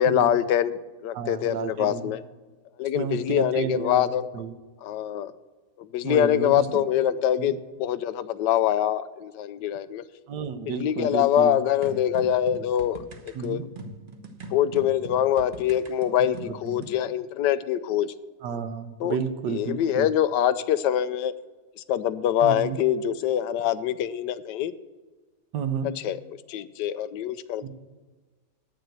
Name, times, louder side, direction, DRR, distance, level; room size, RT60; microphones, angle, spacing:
voice 1, 0.0-2.2 2.8-4.2 4.8-5.3 5.8-10.0 10.7-13.7 14.5-18.1 19.0-19.2 19.5-21.3 21.8-24.7 26.0-26.2 26.5-27.7, left 10 dB, 90° left, 14 dB, 1.2 m, -24 dB
voice 2, 1.1-2.1 2.9-4.6 6.0-6.8 7.4-7.5 10.3-11.6 13.3-13.7 16.7-16.9 18.4-20.1 22.4-22.8 25.5-25.9 27.6-27.7, right 6 dB, 85° right, 9 dB, 1.5 m, -31 dB
sound 1, 11.8-17.0, right 2 dB, 35° right, 0.9 m, -41 dB
9.2 x 7.2 x 7.9 m, 1.3 s
omnidirectional pair, 1.8 m